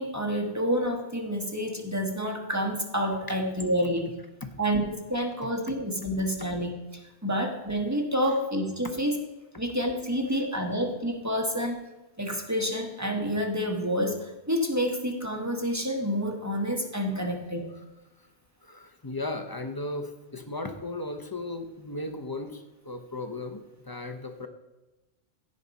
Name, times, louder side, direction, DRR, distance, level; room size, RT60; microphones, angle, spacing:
voice 1, 0.0-4.1 4.6-9.1 9.6-11.8 12.2-17.6, equal, 15° right, 1 dB, 1.3 m, -28 dB
voice 2, 18.6-24.5, left 2 dB, 25° left, 7 dB, 0.7 m, -36 dB
16.0 x 5.3 x 4.1 m, 1.1 s
omnidirectional pair, 1.1 m